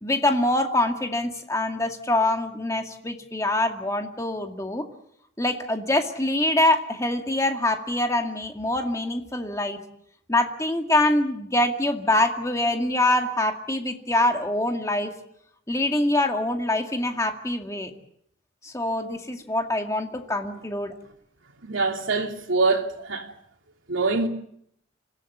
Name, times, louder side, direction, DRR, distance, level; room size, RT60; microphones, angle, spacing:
voice 1, 0.0-4.8 5.4-9.8 10.3-15.1 15.7-17.9 18.6-20.9, left 1 dB, 15° left, 2.1 m, -24 dB
voice 2, 21.6-23.3 23.9-24.3, right 3 dB, 85° right, 2.9 m, -24 dB
26.5 x 16.5 x 8.0 m
head